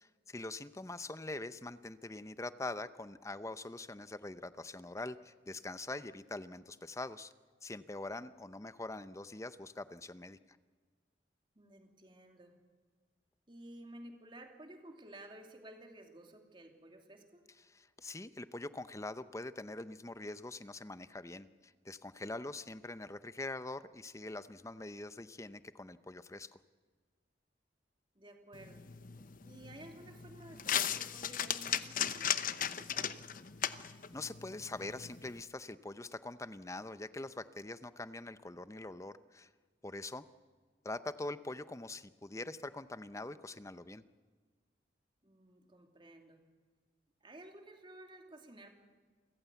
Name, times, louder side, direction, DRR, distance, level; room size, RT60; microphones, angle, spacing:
voice 1, 0.3-7.3 7.6-10.4 17.6-26.5 33.7-39.5 39.8-40.2 40.8-44.0, left 2 dB, 15° left, 13 dB, 0.7 m, -44 dB
voice 2, 11.5-12.6 13.5-17.5 28.1-28.8 29.4-33.3 45.2-46.4 47.2-48.7, right 1 dB, 25° right, 3 dB, 2.7 m, -54 dB
sound 1, 28.5-35.4, left 9 dB, 45° left, 0.8 m, -37 dB
28.5 x 15.0 x 8.2 m, 1.5 s
head